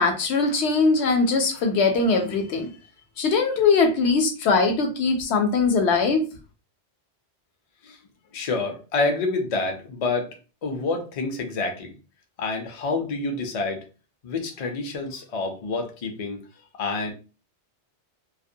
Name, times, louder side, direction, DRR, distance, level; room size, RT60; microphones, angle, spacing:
voice 1, 0.0-2.7 3.2-6.2, left 4 dB, 75° left, 4 dB, 0.9 m, -21 dB
voice 2, 8.3-10.3 10.6-11.9 12.4-13.8 14.2-16.4 16.8-17.1, left 3 dB, 45° left, 4 dB, 0.5 m, -28 dB
2.4 x 2.1 x 2.6 m, 0.33 s
omnidirectional pair, 1.1 m